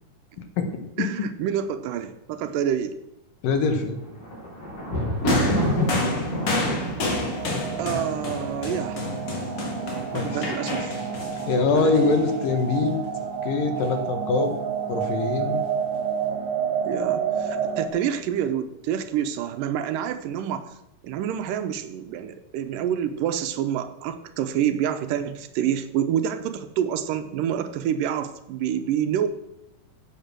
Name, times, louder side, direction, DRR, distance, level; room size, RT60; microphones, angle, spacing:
voice 1, 1.0-3.0 7.8-9.0 10.1-11.0 11.7-11.9 16.8-20.8 21.0-29.3, right 9 dB, 85° right, 10 dB, 2.5 m, -27 dB
voice 2, 3.4-4.0 10.1-10.4 11.5-13.0 13.4-14.5 14.9-15.6, left 4 dB, 85° left, 7 dB, 3.2 m, -23 dB
Thunder, 3.9-9.0 9.7-10.3 10.5-10.6, equal, 65° left, 5.4 m, -28 dB
sound 1, 5.3-12.8 13.8-13.9, left 2 dB, 45° left, 3.0 m, -30 dB
sound 2, 7.0-17.9, right 7 dB, 50° right, 1.9 m, -30 dB
13.5 x 8.4 x 6.2 m, 0.87 s
omnidirectional pair, 3.8 m